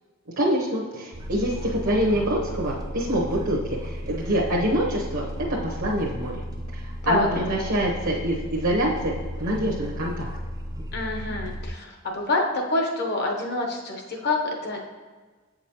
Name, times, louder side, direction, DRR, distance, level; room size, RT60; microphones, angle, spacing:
voice 1, 0.4-6.3 6.7-9.1 9.4-10.3, right 1 dB, 65° right, -3 dB, 0.9 m, -25 dB
sound 1, 1.1-11.7, equal, 20° right, 0.4 m, -34 dB
voice 2, 10.9-14.8, left 2 dB, 50° left, 1 dB, 0.9 m, -26 dB
8.0 x 5.0 x 3.0 m, 1.4 s
head